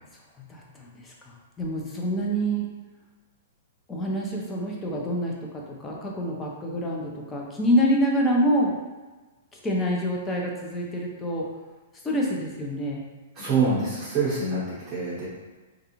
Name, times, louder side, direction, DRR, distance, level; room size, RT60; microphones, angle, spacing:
voice 1, 0.5-1.1 1.6-2.7 3.9-8.7 9.6-11.5 12.0-13.0, equal, 15° left, -2 dB, 0.5 m, -26 dB
voice 2, 13.4-15.3, right 4 dB, 25° right, -9 dB, 0.9 m, -25 dB
2.4 x 2.3 x 2.9 m, 1.2 s
hypercardioid pair, 135°, 0 cm